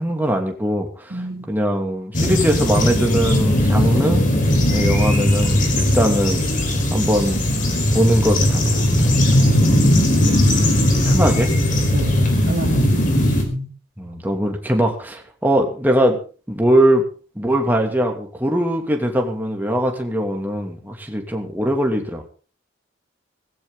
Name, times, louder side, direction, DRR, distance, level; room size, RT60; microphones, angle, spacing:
voice 1, 0.0-4.2 4.7-6.5 6.9-7.5 7.9-9.2 9.7-9.8 11.0-11.5 14.0-16.2 16.5-17.0 17.4-22.2, right 1 dB, 10° right, 2 dB, 2.7 m, -21 dB
voice 2, 1.1-1.5 9.4-10.0 11.9-13.7, equal, 50° right, 0 dB, 2.8 m, -27 dB
sound 1, 2.1-13.4, left 1 dB, 45° left, 4.8 m, -18 dB
17.5 x 16.0 x 4.0 m, 0.38 s
head